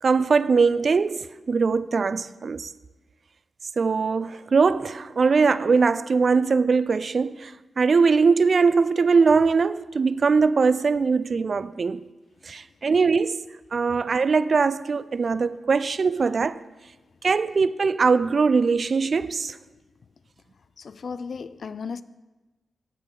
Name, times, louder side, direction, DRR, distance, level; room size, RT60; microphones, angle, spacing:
voice 1, 0.0-2.7 3.8-12.0 12.5-13.4 13.7-16.6 17.2-19.6, right 4 dB, 55° right, 0.4 m, -21 dB
voice 2, 20.8-22.0, left 5 dB, 65° left, 0.4 m, -35 dB
16.5 x 6.1 x 3.8 m
cardioid pair, 70°, 0 cm